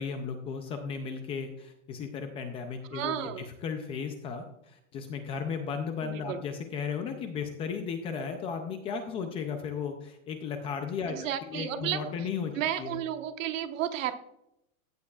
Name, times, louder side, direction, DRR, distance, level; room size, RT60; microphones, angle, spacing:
voice 1, 0.0-12.5 12.8-13.0, left 6 dB, 15° left, 6 dB, 0.4 m, -35 dB
voice 2, 2.9-3.5 6.1-6.4 11.1-12.0 12.5-14.2, right 11 dB, 70° right, 8 dB, 1.3 m, -32 dB
15.0 x 9.4 x 2.4 m, 0.80 s
supercardioid pair, 150°, 40 cm